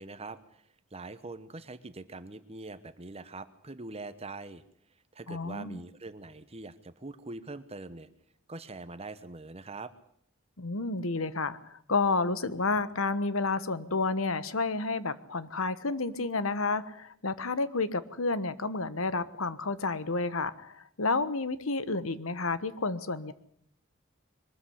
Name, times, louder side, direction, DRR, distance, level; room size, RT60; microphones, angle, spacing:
voice 1, 0.0-4.6 5.1-8.1 8.5-9.9, right 3 dB, 30° right, 13 dB, 1.0 m, -43 dB
voice 2, 5.3-5.8 10.6-23.3, left 3 dB, 70° left, 14 dB, 1.3 m, -30 dB
22.5 x 13.5 x 10.0 m, 0.64 s
head